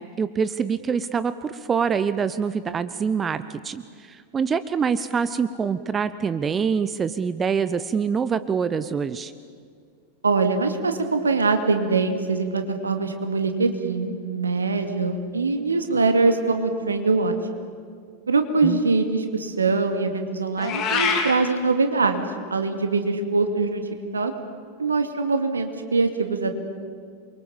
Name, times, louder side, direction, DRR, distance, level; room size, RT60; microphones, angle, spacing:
voice 1, 0.0-3.8 4.1-9.3 18.6-18.8, right 6 dB, 20° right, 14 dB, 0.8 m, -25 dB
voice 2, 10.2-17.6 18.3-22.2 22.5-23.8 24.1-24.3 24.8-26.5, right 3 dB, 75° right, 6 dB, 2.3 m, -23 dB
Meow, 20.6-21.3, left 5 dB, 35° left, 3.6 m, -24 dB
28.0 x 23.5 x 7.3 m, 2.1 s
figure-of-eight pair, 90°, 0 cm